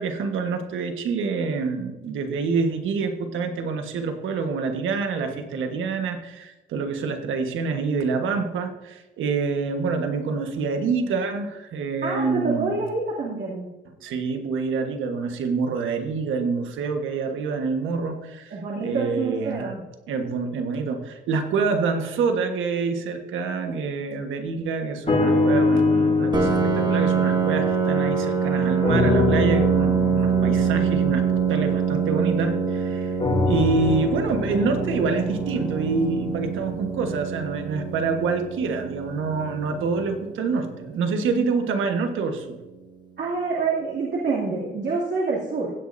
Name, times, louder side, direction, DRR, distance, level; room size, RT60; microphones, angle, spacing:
voice 1, 0.0-12.8 14.0-19.7 20.1-26.5 26.7-33.1 33.5-42.6, right 4 dB, 80° right, 5 dB, 1.5 m, -26 dB
voice 2, 12.0-13.7 18.5-19.8 43.2-45.7, right 4 dB, 55° right, -5 dB, 2.7 m, -27 dB
sound 1, 25.1-28.4 28.8-32.6 33.2-37.4 38.1-38.2, left 3 dB, 30° left, 2.7 m, -25 dB
Piano, 26.3-41.7, right 7 dB, 20° right, 1.2 m, -25 dB
16.0 x 8.4 x 2.7 m, 1.1 s
cardioid pair, 90°, 20 cm